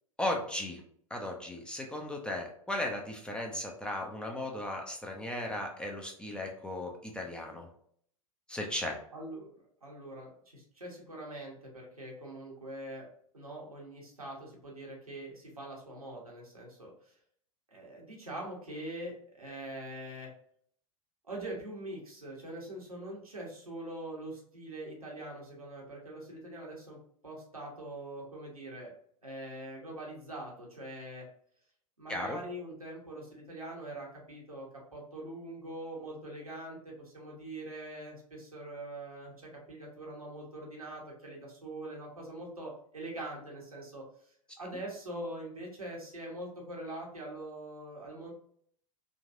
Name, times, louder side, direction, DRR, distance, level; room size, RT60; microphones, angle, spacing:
voice 1, 0.2-0.8 1.1-7.7 8.5-9.0 32.1-32.4, left 1 dB, 5° left, 1 dB, 0.6 m, -36 dB
voice 2, 9.1-13.1 13.3-17.1 17.7-20.3 21.2-27.0 27.2-28.9 29.2-31.2 32.0-48.3, right 1 dB, 85° right, -3 dB, 1.1 m, -43 dB
3.8 x 2.4 x 2.5 m, 0.63 s
figure-of-eight pair, 85°, 18 cm